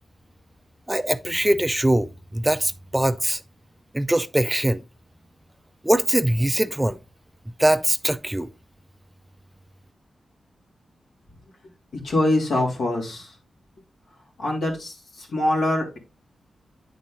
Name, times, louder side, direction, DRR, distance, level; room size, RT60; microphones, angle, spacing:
voice 1, 0.9-3.4 3.9-4.8 5.8-7.0 7.6-8.5, right 1 dB, 10° right, 0.3 m, -22 dB
voice 2, 12.0-13.3 14.4-16.0, left 1 dB, 90° left, 3.0 m, -24 dB
9.3 x 4.2 x 3.8 m
wide cardioid pair, 120°, 0 cm